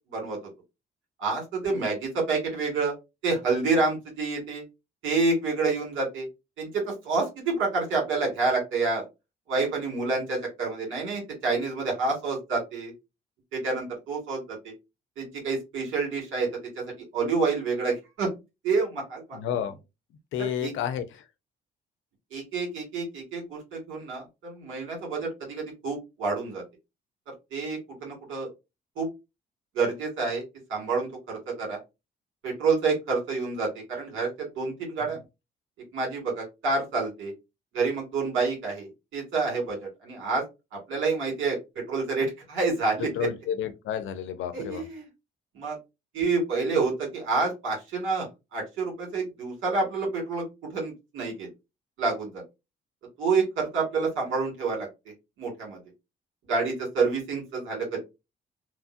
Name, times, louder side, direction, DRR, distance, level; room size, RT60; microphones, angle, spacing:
voice 1, 0.1-0.4 1.2-2.9 3.2-4.6 5.0-6.3 6.6-9.0 9.5-12.9 13.5-14.7 15.2-18.3 18.6-19.4 20.4-20.7 22.3-26.6 27.5-28.5 29.0-29.1 29.7-30.4 30.7-31.8 32.4-35.2 35.9-37.3 37.7-40.4 40.7-43.3 44.5-45.1 45.6-45.8 46.1-50.4 50.7-51.5 52.0-52.4 53.2-54.9 55.4-55.8 56.4-58.0, right 4 dB, 80° right, 1.8 m, -28 dB
voice 2, 19.3-19.7 20.3-21.0 43.2-44.8, left 9 dB, 80° left, 0.6 m, -30 dB
3.0 x 2.4 x 2.5 m
cardioid pair, 90°, 20 cm